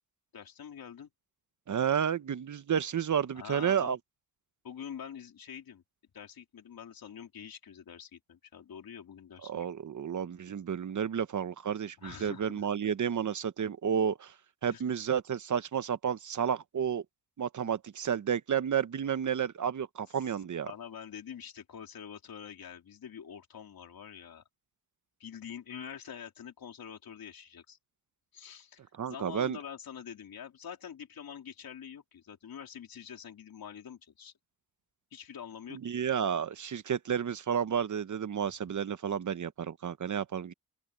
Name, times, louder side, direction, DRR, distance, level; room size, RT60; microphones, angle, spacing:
voice 1, 0.3-1.1 3.3-4.0 4.6-5.8 6.1-9.7 12.0-12.7 14.6-14.8 20.6-24.4 25.2-27.8 28.3-28.8 29.1-34.3 35.1-36.0, left 8 dB, 70° left, 3.6 m, -46 dB
voice 2, 1.7-4.0 9.4-14.3 14.6-17.0 17.4-20.7 29.0-29.6 35.7-40.5, right 8 dB, 55° right, 1.0 m, -31 dB
open air
cardioid pair, 95°, 36 cm